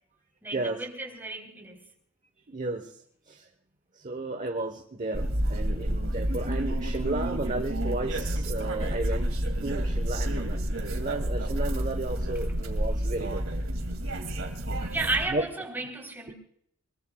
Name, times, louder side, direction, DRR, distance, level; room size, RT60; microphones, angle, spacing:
voice 1, 0.4-1.8 14.9-16.3, right 3 dB, 10° right, 1 dB, 3.7 m, -33 dB
voice 2, 2.5-3.0 3.3-3.5 3.9-9.3 9.6-10.7 10.9-13.4 14.1-14.9 15.3-15.4, right 2 dB, 35° right, 5 dB, 1.1 m, -33 dB
sound 1, 5.1-15.3, right 1 dB, 65° right, 2.5 m, -29 dB
24.0 x 22.0 x 2.3 m, 0.68 s
head